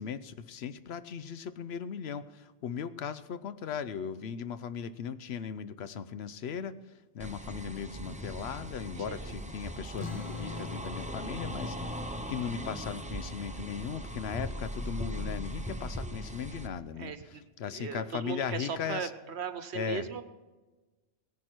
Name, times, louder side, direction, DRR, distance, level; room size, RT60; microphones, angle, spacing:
voice 1, 0.0-6.8 7.1-17.1 17.6-19.1 19.7-20.1, left 7 dB, 70° left, 13 dB, 0.9 m, -38 dB
sound 1, 7.2-16.7, equal, 10° right, 0.5 m, -39 dB
voice 2, 9.0-9.3 16.9-17.4 17.7-20.2, right 7 dB, 75° right, 10 dB, 1.2 m, -38 dB
sound 2, 10.0-15.0, left 5 dB, 30° left, 0.9 m, -45 dB
17.5 x 10.5 x 4.5 m, 1.2 s
omnidirectional pair, 1.1 m